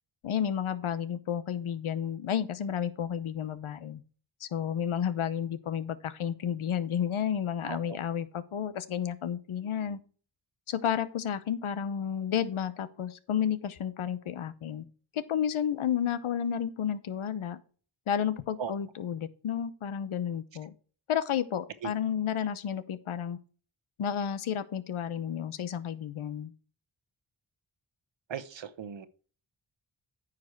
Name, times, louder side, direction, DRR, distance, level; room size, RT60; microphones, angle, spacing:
voice 1, 0.2-4.0 4.4-10.0 10.7-14.9 15.1-17.6 18.1-20.7 21.1-23.4 24.0-26.5, left 9 dB, 90° left, 0.9 m, -31 dB
voice 2, 7.6-8.0 18.6-18.7 21.8-21.9 28.3-29.1, right 7 dB, 65° right, 1.1 m, -37 dB
9.4 x 5.0 x 4.6 m
cardioid pair, 50°, 48 cm